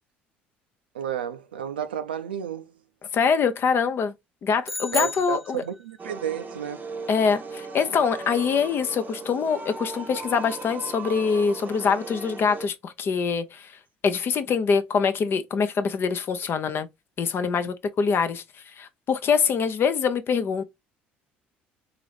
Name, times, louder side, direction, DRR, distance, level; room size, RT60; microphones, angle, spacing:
voice 1, 0.9-2.8 4.9-6.9, right 8 dB, 85° right, 0.4 m, -32 dB
voice 2, 3.1-4.1 4.4-5.6 7.1-13.7 14.0-16.9 17.2-18.4 18.8-20.6, left 6 dB, 45° left, 0.6 m, -24 dB
sound 1, 4.6-6.1, left 2 dB, ahead, 0.5 m, -33 dB
sound 2, 6.0-12.7, right 4 dB, 35° right, 0.8 m, -38 dB
3.8 x 2.6 x 3.3 m
hypercardioid pair, 60°, 5 cm